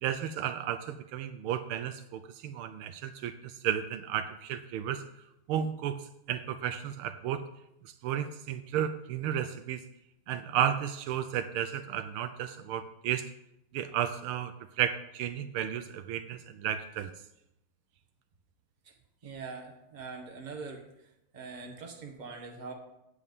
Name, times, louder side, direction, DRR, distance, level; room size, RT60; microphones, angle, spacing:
voice 1, 0.0-5.0 5.5-6.0 6.3-7.4 7.8-9.8 10.3-13.3 13.7-17.1, right 9 dB, 80° right, 9 dB, 1.4 m, -33 dB
voice 2, 19.2-20.8 21.3-22.7, right 4 dB, 25° right, 2 dB, 1.3 m, -42 dB
8.8 x 8.3 x 5.3 m, 0.83 s
omnidirectional pair, 2.4 m